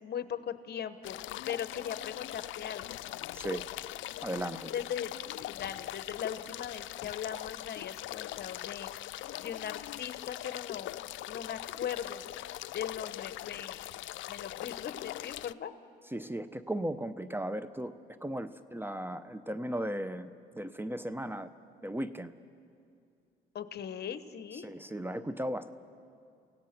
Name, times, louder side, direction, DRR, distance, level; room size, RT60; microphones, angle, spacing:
voice 1, 0.0-1.2 1.4-2.8 4.7-5.1 5.5-11.0 11.3-12.3 12.7-13.9 14.3-15.7 23.5-24.7, left 8 dB, 55° left, 12 dB, 1.0 m, -39 dB
sound 1, 1.0-15.5, left 15 dB, 75° left, 0.4 m, -41 dB
voice 2, 4.2-4.7 16.1-17.9 18.2-21.5 21.8-22.3 24.5-25.7, right 1 dB, 10° right, 12 dB, 0.7 m, -36 dB
29.5 x 16.5 x 6.0 m, 2.5 s
cardioid pair, 90°, 20 cm